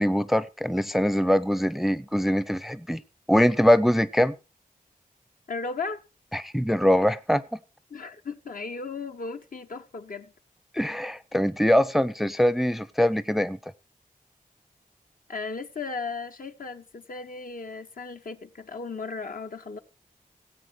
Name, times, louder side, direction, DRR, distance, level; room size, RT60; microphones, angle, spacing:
voice 1, 0.0-3.0 3.3-4.3 6.3-7.4 10.7-13.6, equal, ahead, 0.5 m, -23 dB
voice 2, 5.5-6.0 7.9-10.3 15.3-19.8, left 4 dB, 70° left, 1.2 m, -36 dB
17.5 x 8.3 x 4.6 m
wide cardioid pair, 95°, 15 cm